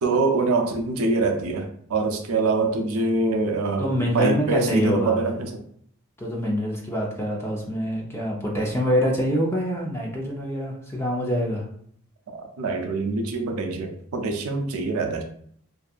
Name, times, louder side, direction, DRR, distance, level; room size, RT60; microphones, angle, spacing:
voice 1, 0.0-5.6 12.3-15.2, right 3 dB, 90° right, 0.5 m, -24 dB
voice 2, 3.8-5.4 6.2-11.6, equal, 10° left, 0.5 m, -25 dB
2.7 x 2.3 x 2.3 m
head